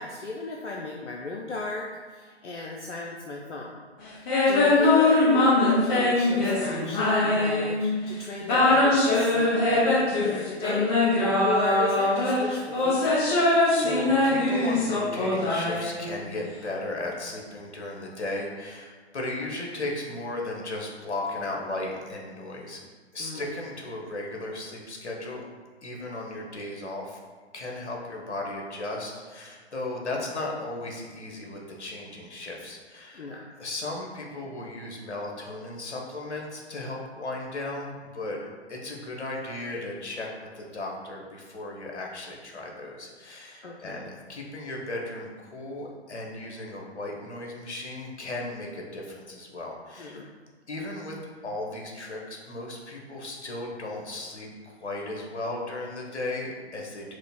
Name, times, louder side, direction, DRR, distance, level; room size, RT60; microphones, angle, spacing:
voice 1, 0.0-1.9 2.1-3.7 4.2-10.9 11.4-13.3 23.2-23.5 33.1-33.5 43.6-44.0 50.0-50.3, left 2 dB, 90° left, -1 dB, 0.6 m, -35 dB
sound 1, 4.3-8.0 8.4-16.3, left 2 dB, 20° left, 0.6 m, -22 dB
voice 2, 13.3-22.8 23.1-25.4 25.8-27.2 27.5-33.3 33.6-50.2 50.7-51.2 51.4-57.1, left 2 dB, 75° left, -1 dB, 1.1 m, -36 dB
4.9 x 2.1 x 4.2 m, 1.5 s
figure-of-eight pair, 125°, 34 cm